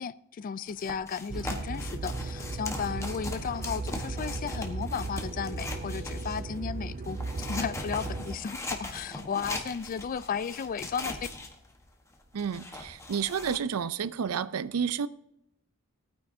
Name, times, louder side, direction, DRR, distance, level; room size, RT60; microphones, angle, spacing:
voice 1, 0.0-11.3, left 6 dB, 40° left, 0.3 m, -34 dB
sound 1, 0.7-6.6 7.0-13.6, left 2 dB, 15° left, 1.2 m, -40 dB
Acoustic guitar, 1.3-5.5, left 2 dB, ahead, 1.5 m, -57 dB
sound 2, 1.3-8.4, right 3 dB, 40° right, 0.5 m, -36 dB
voice 2, 12.3-15.1, right 7 dB, 85° right, 0.5 m, -30 dB
19.0 x 9.2 x 2.7 m
head